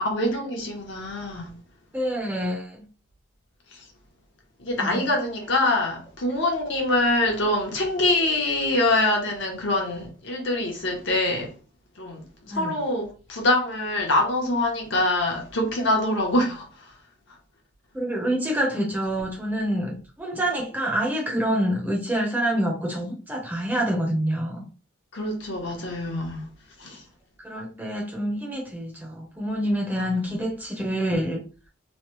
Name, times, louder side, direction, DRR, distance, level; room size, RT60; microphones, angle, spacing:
voice 1, 0.0-1.5 3.7-3.8 4.6-11.6 12.0-16.9 25.1-26.5 26.8-27.0 29.9-30.4, left 1 dB, 60° left, 0.8 m, -25 dB
voice 2, 1.9-2.8 4.8-5.1 12.5-12.7 17.9-24.6 27.4-31.4, equal, 10° right, 0.7 m, -27 dB
3.1 x 2.1 x 3.0 m
head